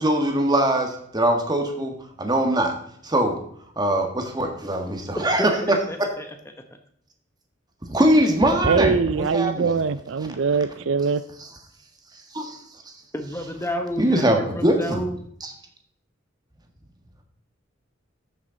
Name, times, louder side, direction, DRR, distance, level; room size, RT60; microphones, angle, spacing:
voice 1, 0.0-2.7 3.0-3.4 3.8-5.5 7.8-9.7 12.3-12.9 14.0-15.0 15.4-15.5, right 1 dB, 20° right, 3 dB, 1.6 m, -22 dB
voice 2, 5.1-6.3 13.1-15.2, equal, 15° left, 6 dB, 0.9 m, -31 dB
voice 3, 8.7-11.2, right 5 dB, 70° right, 14 dB, 0.5 m, -22 dB
13.5 x 6.6 x 3.9 m, 0.66 s
head